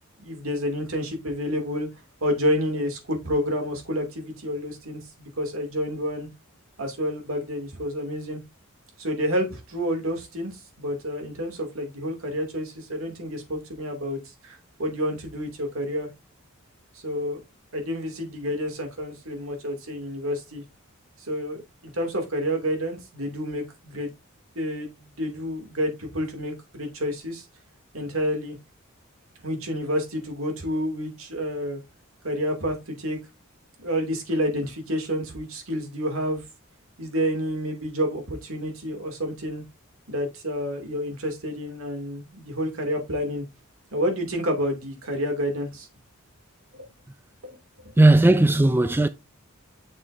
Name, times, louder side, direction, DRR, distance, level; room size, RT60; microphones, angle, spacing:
voice 1, 0.2-1.9 2.2-6.3 6.8-8.4 9.0-16.1 16.9-17.4 17.7-20.6 21.2-21.6 21.8-24.1 24.5-27.4 27.9-28.6 29.4-31.8 32.2-33.2 33.8-36.4 37.0-39.6 40.1-43.4 43.9-45.9 46.7-46.8 47.4-47.6, equal, 75° right, 2.6 m, -29 dB
voice 2, 48.0-49.1, right 2 dB, 10° right, 0.3 m, -16 dB
7.2 x 6.6 x 2.6 m
head